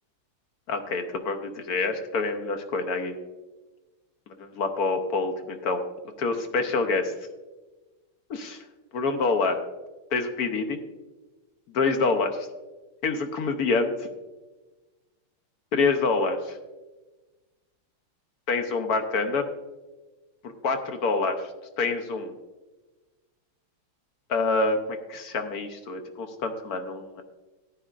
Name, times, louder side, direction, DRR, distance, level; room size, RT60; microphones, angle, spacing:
voice 1, 0.7-3.1 4.4-5.8 6.2-7.1 8.3-8.6 8.9-9.6 10.1-10.8 11.7-12.3 13.0-14.1 15.7-16.4 18.5-19.4 20.6-21.5 21.8-22.3 24.3-27.2, left 3 dB, 60° left, 7 dB, 1.0 m, -26 dB
14.0 x 10.0 x 2.5 m, 1.2 s
omnidirectional pair, 2.3 m